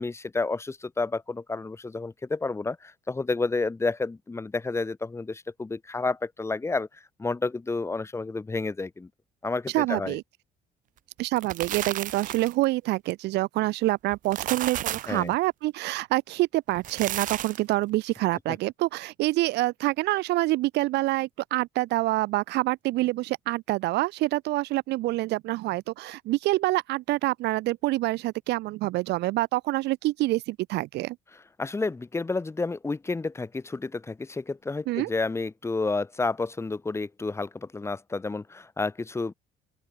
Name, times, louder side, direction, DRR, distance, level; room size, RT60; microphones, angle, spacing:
voice 1, 0.0-9.1 9.4-10.2 15.1-15.3 31.6-39.3, left 3 dB, 15° left, 1.0 m, -30 dB
voice 2, 9.7-10.2 11.2-31.2 34.9-35.1, right 18 dB, 85° right, 1.6 m, -26 dB
sound 1, 11.2-12.6 14.1-15.2 16.7-17.7, right 12 dB, 50° right, 0.5 m, -33 dB
open air
cardioid pair, 110°, 17 cm